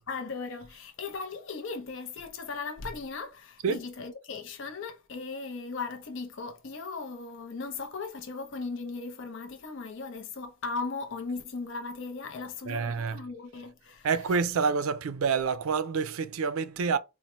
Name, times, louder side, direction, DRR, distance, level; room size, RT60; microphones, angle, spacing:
voice 1, 0.0-14.5, left 4 dB, 55° left, 0.5 m, -37 dB
voice 2, 12.7-13.1 14.0-17.0, right 5 dB, 75° right, 0.4 m, -27 dB
4.0 x 2.1 x 3.0 m
head